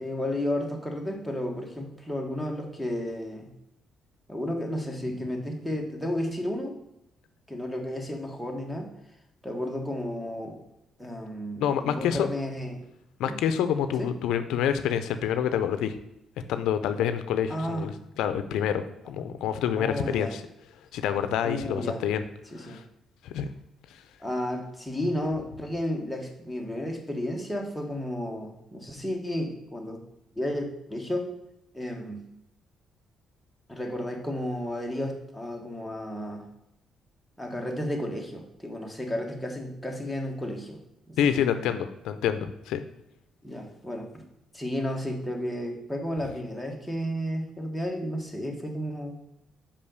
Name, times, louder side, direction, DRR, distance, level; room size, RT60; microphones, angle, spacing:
voice 1, 0.0-3.5 4.3-6.8 7.5-8.9 9.4-10.6 11.0-12.8 13.2-13.4 14.0-14.1 17.5-17.9 19.8-20.3 21.4-22.0 22.5-22.8 24.2-30.0 30.3-31.3 31.7-32.2 33.7-36.5 37.4-40.8 41.1-41.7 43.4-44.3 44.5-49.2, left 1 dB, ahead, 0 dB, 1.5 m, -32 dB
voice 2, 11.6-12.3 13.2-16.0 16.5-20.4 20.9-22.2 22.6-22.8 23.2-23.5 23.9-24.0 41.2-42.8, left 9 dB, 90° left, 10 dB, 0.5 m, -27 dB
5.4 x 5.1 x 6.6 m, 0.83 s
cardioid pair, 90°, 0 cm